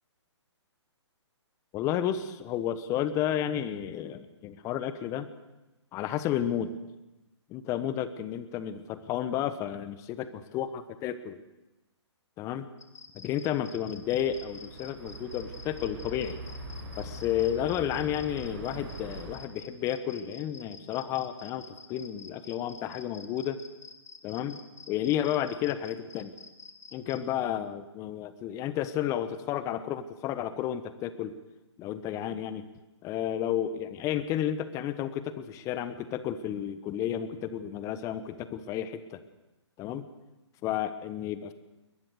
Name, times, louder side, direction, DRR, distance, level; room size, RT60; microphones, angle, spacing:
voice 1, 1.7-5.3 5.9-6.7 7.5-11.4 12.4-12.7 13.1-16.4 17.0-23.6 24.2-24.6 24.9-26.3 26.9-31.3 31.8-32.6 33.0-39.2 39.8-40.0 40.6-41.5, left 10 dB, 20° left, 13 dB, 1.2 m, -32 dB
sound 1, 12.8-27.2, left 3 dB, 75° left, 2.7 m, -49 dB
sound 2, 13.9-19.4, right 1 dB, 30° right, 5.6 m, -43 dB
22.0 x 20.0 x 6.6 m, 1.0 s
figure-of-eight pair, 140°, 15 cm